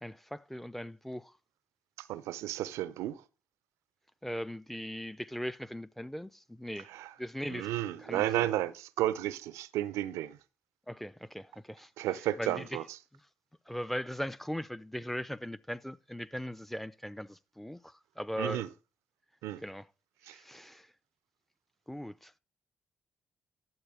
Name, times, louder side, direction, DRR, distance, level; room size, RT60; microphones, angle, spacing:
voice 1, 0.0-1.3 4.2-6.9 7.2-7.7 8.0-8.5 10.9-11.9 12.4-12.7 13.7-18.6 19.6-19.9 20.3-20.9 21.9-22.4, equal, 5° left, 0.6 m, -39 dB
voice 2, 2.0-3.2 6.8-7.1 7.5-10.4 12.0-13.0 18.4-18.7 19.4-19.6 20.2-20.4, right 14 dB, 75° right, 0.5 m, -33 dB
12.0 x 7.7 x 3.5 m
hypercardioid pair, 40°, 5 cm